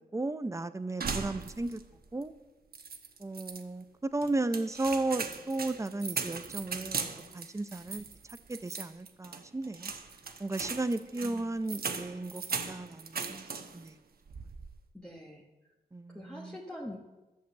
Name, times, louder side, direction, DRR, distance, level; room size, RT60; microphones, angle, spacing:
voice 1, 0.1-1.8 2.1-2.3 3.2-7.0 7.3-8.0 8.5-9.9 10.4-13.5 13.7-13.9 15.9-16.5, right 2 dB, 15° right, 12 dB, 0.6 m, -34 dB
sound 1, 1.0-1.9 2.2-2.3 2.7-3.6 4.2-13.9 14.3-14.8, right 5 dB, 65° right, 1.0 m, -39 dB
voice 2, 11.2-11.5 14.9-15.5 16.1-17.0, left 1 dB, 5° left, -3 dB, 1.4 m, -44 dB
11.5 x 7.5 x 7.7 m, 1.1 s
wide cardioid pair, 95°, 17 cm